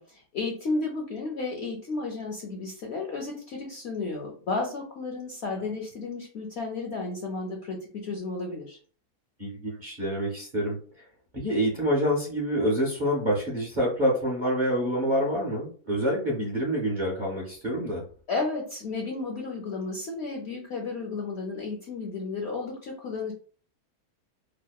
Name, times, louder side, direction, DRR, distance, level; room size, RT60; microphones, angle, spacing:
voice 1, 0.0-8.8 18.3-23.3, left 3 dB, 70° left, 0 dB, 0.6 m, -33 dB
voice 2, 9.4-11.1 11.3-18.0, equal, 50° right, -5 dB, 0.6 m, -27 dB
2.8 x 2.1 x 2.2 m, 0.43 s
omnidirectional pair, 1.6 m